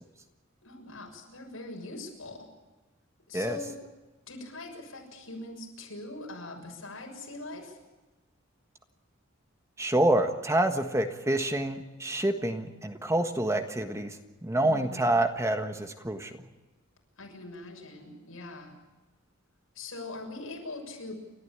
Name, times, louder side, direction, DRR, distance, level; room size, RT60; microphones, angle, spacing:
voice 1, 0.6-2.5 3.3-3.7 4.3-7.8 14.6-15.1 17.2-18.8 19.7-21.2, left 2 dB, 90° left, 1 dB, 6.6 m, -42 dB
voice 2, 9.8-14.2 14.4-16.3, right 1 dB, 15° right, 6 dB, 1.5 m, -27 dB
29.5 x 13.5 x 8.8 m, 1.2 s
head